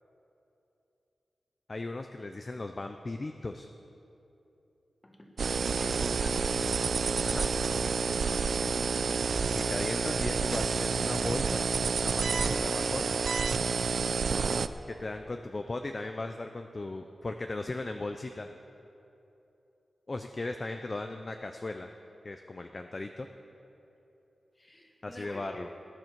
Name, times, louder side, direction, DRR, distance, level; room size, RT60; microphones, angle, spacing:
voice 1, 1.7-3.7 7.2-7.5 9.5-11.7 12.0-13.1 14.9-18.5 20.1-21.9 22.2-23.3 25.0-25.7, left 2 dB, 30° left, 6 dB, 0.4 m, -37 dB
sound 1, 5.4-14.7, right 5 dB, 70° right, 0.4 m, -29 dB
voice 2, 5.6-6.7 24.6-25.7, left 1 dB, 15° left, 2 dB, 1.5 m, -47 dB
18.0 x 10.5 x 4.6 m, 3.0 s
wide cardioid pair, 130°, 0 cm